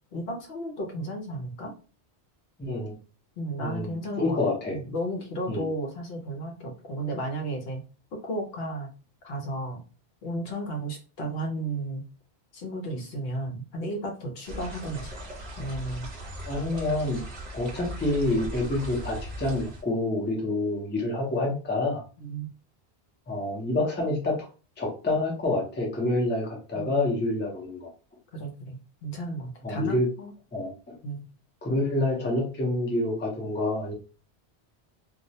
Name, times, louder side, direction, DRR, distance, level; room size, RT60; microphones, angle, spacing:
voice 1, 0.1-1.7 3.4-4.4 4.7-7.8 8.1-8.9 9.2-9.8 10.2-12.0 12.5-15.1 15.6-16.1 22.2-22.5 26.7-27.0 28.3-30.3 31.0-31.3, right 1 dB, 70° left, 2 dB, 0.8 m, -33 dB
voice 2, 2.6-2.9 3.6-4.7 5.5-5.7 16.4-17.2 17.5-22.0 23.3-24.5 24.8-27.9 29.6-30.1 30.5-30.7 31.6-33.9, left 2 dB, 15° left, -2 dB, 0.5 m, -27 dB
sound 1, 14.4-19.8, equal, 45° right, 0.7 m, -38 dB
2.3 x 2.0 x 2.7 m, 0.36 s
omnidirectional pair, 1.1 m